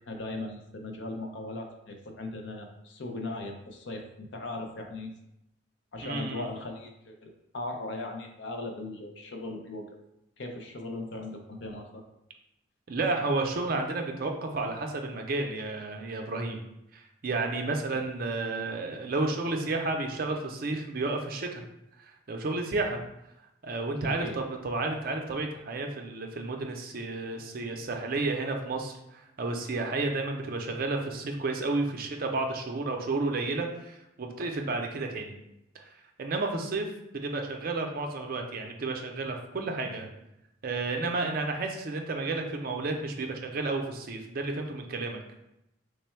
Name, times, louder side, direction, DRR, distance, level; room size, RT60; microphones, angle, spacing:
voice 1, 0.1-5.1 5.9-9.9 10.4-12.0 24.0-24.4, left 2 dB, 65° left, 3 dB, 0.6 m, -38 dB
voice 2, 6.0-6.5 12.9-16.6 16.9-21.6 22.0-23.0 23.6-35.3 35.7-35.9 36.2-36.9 37.1-40.1 40.6-45.2, right 3 dB, 50° right, 3 dB, 0.5 m, -31 dB
3.3 x 2.2 x 4.3 m, 0.84 s
head